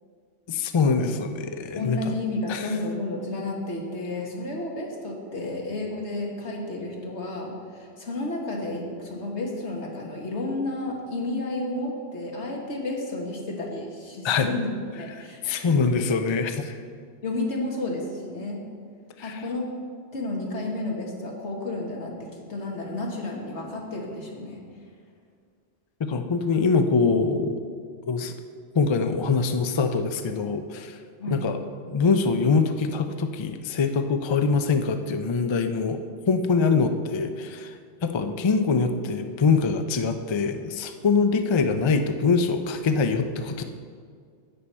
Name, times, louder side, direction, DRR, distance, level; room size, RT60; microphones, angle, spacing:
voice 1, 0.5-2.0 2.5-2.7 14.2-14.5 15.4-16.7 19.2-19.4 26.0-27.6 28.1-28.3 28.7-31.0 31.3-31.6 31.9-36.0 36.3-37.7 38.0-43.6, left 4 dB, 40° left, 7 dB, 0.4 m, -23 dB
voice 2, 1.7-15.9 17.2-18.6 19.2-19.7 20.1-24.6 31.2-31.4, left 2 dB, 85° left, -1 dB, 1.8 m, -31 dB
10.5 x 8.4 x 4.3 m, 2.1 s
omnidirectional pair, 1.2 m